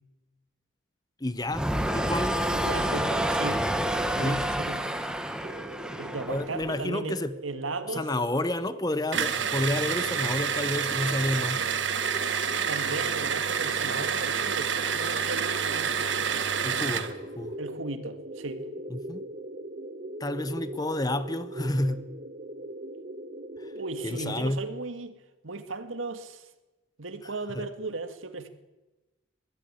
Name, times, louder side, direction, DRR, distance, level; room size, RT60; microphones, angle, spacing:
voice 1, 1.2-1.7 1.9-2.4 4.2-4.5 6.3-7.4 7.9-11.7 16.6-17.5 18.9-19.2 20.2-22.0 24.0-24.6 27.5-27.7, left 1 dB, 20° left, 0.9 m, -30 dB
sound 1, 1.5-6.7, right 1 dB, 5° right, 1.3 m, -28 dB
voice 2, 2.5-3.6 4.2-4.9 6.0-8.1 12.7-15.9 17.6-18.7 23.7-26.5 27.0-28.5, right 3 dB, 90° right, 2.0 m, -36 dB
sound 2, 5.4-24.4, right 1 dB, 40° right, 1.4 m, -41 dB
sound 3, 9.1-17.1, right 7 dB, 70° right, 1.4 m, -28 dB
22.0 x 14.0 x 9.0 m
head